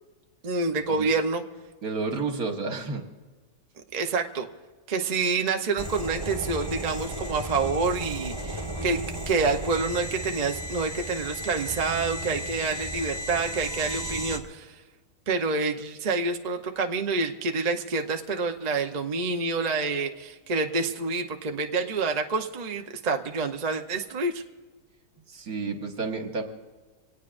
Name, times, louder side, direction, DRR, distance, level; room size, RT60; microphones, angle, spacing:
voice 1, 0.4-1.4 3.9-4.5 4.9-9.0 9.3-14.7 15.3-24.4, right 4 dB, 35° right, 4 dB, 0.7 m, -27 dB
voice 2, 1.8-3.0 25.3-26.4, right 4 dB, 65° right, 3 dB, 2.0 m, -31 dB
sound 1, 5.8-14.4, right 1 dB, 20° right, 1.2 m, -34 dB
25.0 x 18.0 x 2.6 m, 1.4 s
omnidirectional pair, 1.7 m